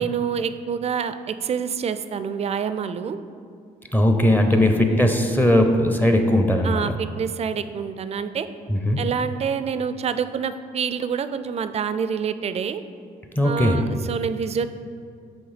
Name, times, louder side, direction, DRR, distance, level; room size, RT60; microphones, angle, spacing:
voice 1, 0.0-3.2 4.5-5.0 6.6-8.5 9.0-12.8 13.4-14.7, right 7 dB, 40° right, 12 dB, 0.4 m, -27 dB
voice 2, 3.9-6.9 8.7-9.0 13.4-13.8, left 1 dB, 10° left, 5 dB, 0.6 m, -19 dB
7.1 x 3.4 x 5.0 m, 2.3 s
supercardioid pair, 75°, 17 cm